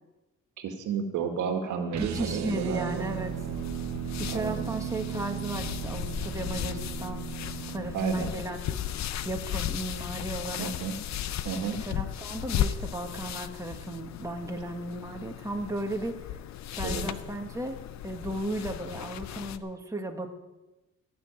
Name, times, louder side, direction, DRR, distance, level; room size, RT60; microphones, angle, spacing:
voice 1, 0.6-3.0 4.3-4.7 7.9-8.3 10.6-11.0 11.4-11.8 16.8-17.0, right 6 dB, 80° right, 5 dB, 1.9 m, -32 dB
sound 1, 1.9-8.0, right 10 dB, 65° right, 1.1 m, -36 dB
voice 2, 2.0-3.3 4.2-8.6 9.2-10.7 11.8-16.2 16.8-17.8 18.0-20.3, right 1 dB, 10° right, 3 dB, 1.7 m, -35 dB
sound 2, 2.9-19.6, left 10 dB, 65° left, 0.7 m, -36 dB
15.5 x 6.2 x 8.9 m, 1.0 s
cardioid pair, 90°, 30 cm